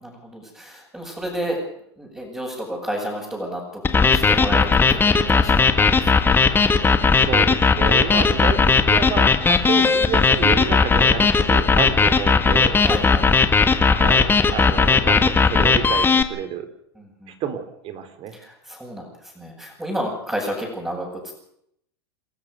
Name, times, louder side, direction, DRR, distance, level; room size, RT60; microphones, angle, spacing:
voice 1, 0.0-1.6 2.0-6.1 12.8-13.3 17.0-17.3 18.3-21.3, equal, 10° right, -5 dB, 7.7 m, -31 dB
sound 1, 3.8-16.2, left 4 dB, 15° left, 1.8 m, -17 dB
voice 2, 7.1-12.8 13.9-16.7 17.3-18.3, right 8 dB, 40° right, 9 dB, 4.0 m, -29 dB
29.5 x 13.5 x 6.7 m, 0.73 s
hypercardioid pair, 105°, 14 cm